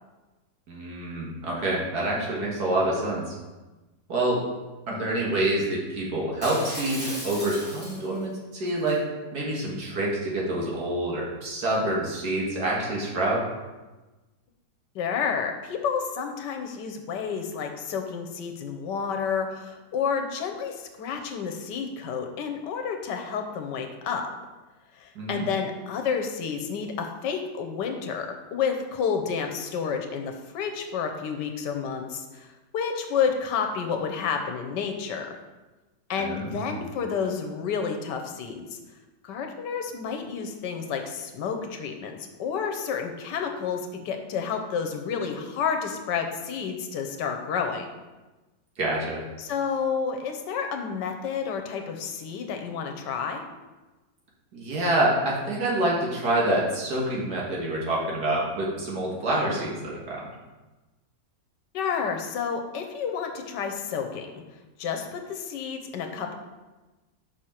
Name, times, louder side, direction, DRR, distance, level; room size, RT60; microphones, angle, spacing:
voice 1, 0.7-3.3 4.1-4.4 4.9-9.0 9.3-13.4 25.2-25.4 36.2-36.9 48.8-49.2 54.5-60.3, right 1 dB, 65° right, -3 dB, 2.0 m, -27 dB
Shatter, 6.4-8.2 8.7-8.9, left 1 dB, 5° left, 2.0 m, -36 dB
voice 2, 14.9-24.3 24.9-35.4 36.1-38.8 39.2-47.9 49.4-53.4 61.7-64.4 64.8-66.3, left 6 dB, 75° left, 4 dB, 1.3 m, -30 dB
6.3 x 5.3 x 4.3 m, 1.2 s
omnidirectional pair, 1.9 m